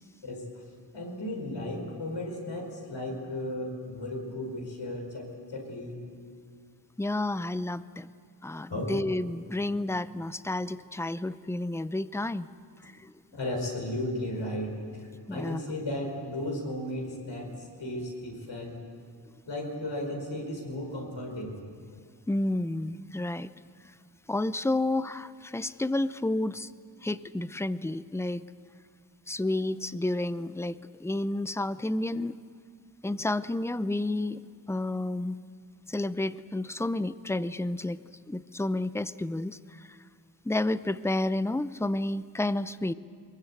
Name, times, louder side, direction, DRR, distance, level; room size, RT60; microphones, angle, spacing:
voice 1, 0.9-6.0 8.7-9.0 13.3-17.5 17.8-18.8 19.5-21.6, left 1 dB, 90° left, 2 dB, 4.8 m, -35 dB
voice 2, 7.0-8.1 8.4-12.5 12.8-13.1 15.3-15.6 22.3-23.5 24.3-26.7 27.0-28.4 29.3-32.4 33.0-35.4 35.9-38.0 38.3-40.0 40.4-42.9, left 2 dB, 5° left, 14 dB, 0.6 m, -30 dB
23.0 x 21.5 x 8.5 m, 2.2 s
wide cardioid pair, 75°, 42 cm